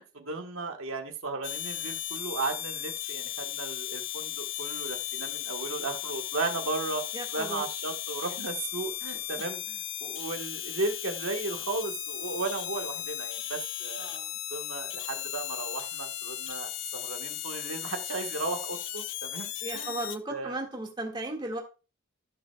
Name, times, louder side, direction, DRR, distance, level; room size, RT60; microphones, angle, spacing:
voice 1, 0.0-7.1 7.3-14.2 14.5-20.6, right 3 dB, 80° right, 4 dB, 1.4 m, -35 dB
sound 1, 1.4-20.2, left 12 dB, 65° left, 0.7 m, -36 dB
voice 2, 7.1-7.6 14.0-14.4 19.6-21.6, right 2 dB, 20° right, 0 dB, 1.9 m, -36 dB
15.5 x 5.5 x 2.3 m, 0.31 s
head